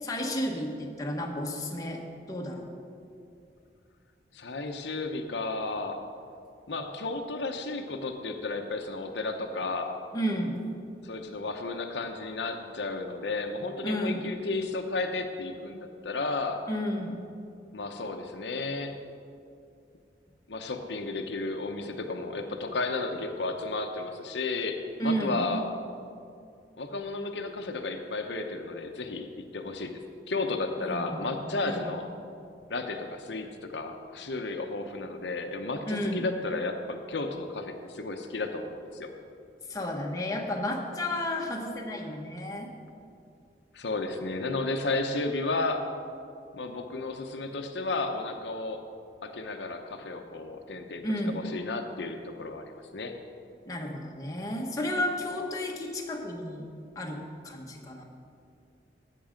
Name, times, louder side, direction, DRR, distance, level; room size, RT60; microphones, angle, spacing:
voice 1, 0.0-2.0 2.3-2.7 10.1-10.5 13.8-14.2 16.7-17.1 25.0-25.5 30.8-31.9 35.9-36.2 39.7-42.7 51.0-51.4 53.7-56.7 56.9-57.2 57.4-58.0, equal, 20° left, 0 dB, 1.1 m, -32 dB
voice 2, 4.3-6.0 6.7-10.0 11.0-16.6 17.7-19.0 20.5-25.7 26.8-29.3 29.5-30.0 30.3-32.1 32.7-39.1 43.7-45.8 46.5-48.8 49.2-51.0 51.3-53.1, left 3 dB, 85° left, 4 dB, 0.9 m, -33 dB
13.0 x 8.6 x 5.1 m, 2.5 s
head